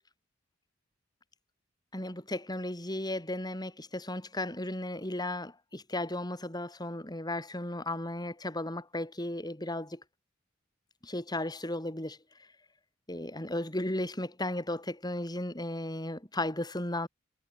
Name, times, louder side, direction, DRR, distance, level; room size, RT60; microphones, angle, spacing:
voice 1, 1.9-10.0 11.0-12.2 13.1-17.1, left 1 dB, 20° left, 4.9 m, -35 dB
head